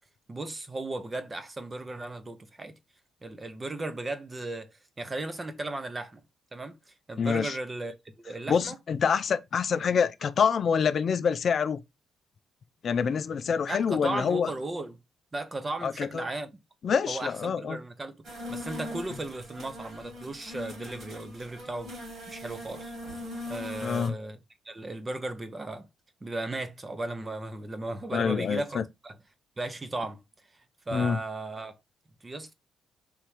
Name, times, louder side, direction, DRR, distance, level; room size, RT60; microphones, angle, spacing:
voice 1, 0.3-2.7 3.2-4.7 5.0-6.2 6.5-6.8 7.1-7.9 8.2-8.8 13.7-15.0 15.3-16.5 17.1-18.2 18.5-21.9 22.3-22.9 23.5-24.4 24.6-25.9 26.2-29.2 29.6-30.2 30.9-31.8 32.2-32.5, right 2 dB, 25° right, 0.8 m, -36 dB
voice 2, 7.2-7.6 8.5-11.8 12.8-14.5 15.8-16.2 16.8-17.8 23.8-24.1 28.1-28.8 30.9-31.2, left 6 dB, 55° left, 0.4 m, -26 dB
sound 1, 18.2-24.1, left 1 dB, 60° right, 2.2 m, -41 dB
3.5 x 3.0 x 4.7 m
cardioid pair, 90°, 0 cm